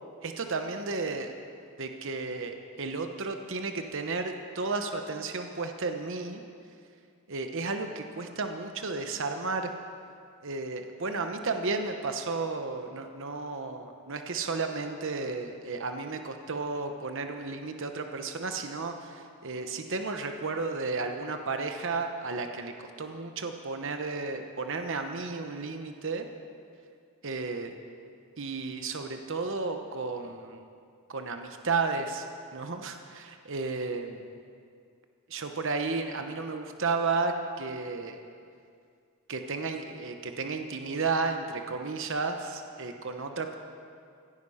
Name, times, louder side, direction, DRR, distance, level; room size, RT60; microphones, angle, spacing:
voice 1, 0.2-1.3 1.8-6.4 7.3-9.7 10.4-26.3 27.2-27.8 28.4-30.6 31.1-32.3 32.5-34.3 35.3-38.2 39.3-43.6, right 4 dB, 60° right, 6 dB, 1.0 m, -33 dB
16.0 x 14.5 x 5.7 m, 2.3 s
head